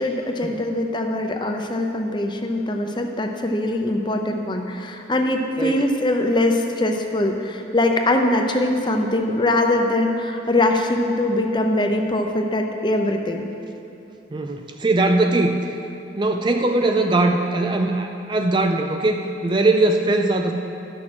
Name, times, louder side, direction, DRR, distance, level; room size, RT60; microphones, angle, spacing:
voice 1, 0.0-13.5, left 1 dB, 25° left, 4 dB, 0.6 m, -22 dB
voice 2, 14.3-15.5 16.2-20.5, right 2 dB, 25° right, 4 dB, 0.4 m, -20 dB
11.0 x 6.3 x 6.2 m, 2.9 s
head